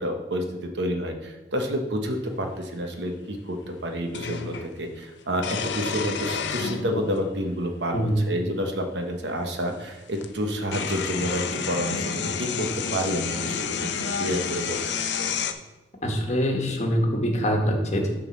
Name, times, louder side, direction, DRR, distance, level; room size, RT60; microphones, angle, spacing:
voice 1, 0.0-13.9 14.2-14.8 15.2-15.3, equal, 75° right, 4 dB, 1.0 m, -29 dB
sound 1, 2.4-2.5 4.1-4.7 5.4-7.2 8.1-8.2 9.7-9.8 10.2-15.5, left 6 dB, 75° left, 0.5 m, -30 dB
voice 2, 16.0-18.1, equal, 40° left, 1 dB, 1.3 m, -24 dB
7.1 x 3.8 x 6.2 m, 1.1 s
head